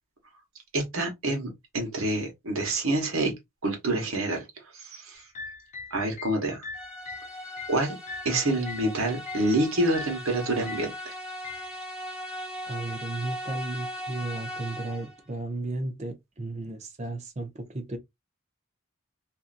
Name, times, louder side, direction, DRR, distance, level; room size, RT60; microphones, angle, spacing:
voice 1, 0.7-3.3 3.6-4.4 4.8-5.2 5.9-6.6 7.7-8.0 8.2-11.1, right 1 dB, 70° right, 1.2 m, -27 dB
sound 1, 5.1-8.9 9.3-9.6 9.9-10.3 10.7-11.0 11.4-11.7, left 4 dB, 35° left, 0.4 m, -41 dB
sound 2, 6.7-15.2, equal, 5° right, 0.8 m, -38 dB
voice 2, 12.6-18.0, right 2 dB, 30° right, 0.6 m, -34 dB
2.7 x 2.5 x 2.5 m
head